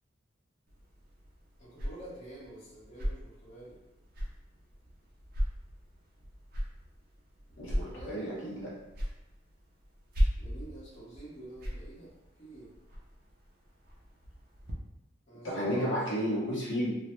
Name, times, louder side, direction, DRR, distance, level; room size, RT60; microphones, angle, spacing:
sound 1, 0.7-14.7, equal, 45° right, 0.4 m, -38 dB
voice 1, 1.6-3.8 7.6-8.7 10.4-12.1 12.4-12.7 15.3-15.9, right 1 dB, 35° left, -8 dB, 0.8 m, -47 dB
voice 2, 7.6-8.7 15.4-16.9, equal, 65° left, -7 dB, 0.6 m, -32 dB
2.1 x 2.1 x 2.9 m, 0.99 s
head